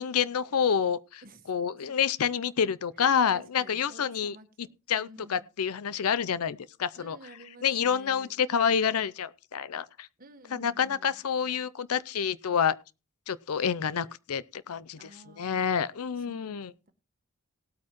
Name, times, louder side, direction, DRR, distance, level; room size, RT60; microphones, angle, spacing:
voice 1, 0.0-1.2 1.5-7.2 7.6-10.1 10.5-12.8 13.3-16.7, left 7 dB, 75° left, 0.5 m, -28 dB
voice 2, 3.0-5.5 6.9-8.3 10.2-11.2 15.0-15.7 16.2-16.9, right 1 dB, 40° right, 1.4 m, -52 dB
18.5 x 8.6 x 3.0 m
head